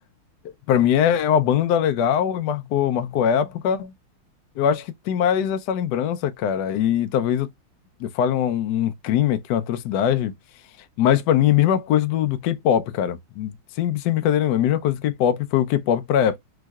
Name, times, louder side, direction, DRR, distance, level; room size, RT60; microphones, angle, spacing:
voice 1, 0.7-3.9 4.6-7.5 8.0-10.3 11.0-16.4, left 10 dB, 80° left, 0.9 m, -21 dB
3.5 x 3.0 x 2.2 m
omnidirectional pair, 2.3 m